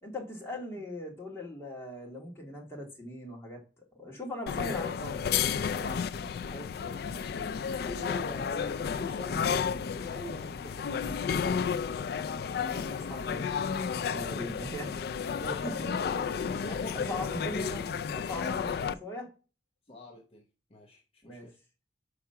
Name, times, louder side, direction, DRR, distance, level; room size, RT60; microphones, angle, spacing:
voice 1, 0.0-3.6 4.0-6.0 12.7-14.9 15.6-15.7 17.1-17.9 18.1-19.3 21.2-21.5, left 1 dB, 15° left, -2 dB, 2.0 m, -40 dB
sound 1, 4.5-18.9, left 6 dB, 60° left, 0.3 m, -32 dB
voice 2, 5.8-7.3 7.8-11.6 14.3-14.7 15.3-17.2 19.9-20.4 20.7-21.6, left 1 dB, 35° left, 0 dB, 0.9 m, -44 dB
5.7 x 4.8 x 5.6 m, 0.34 s
head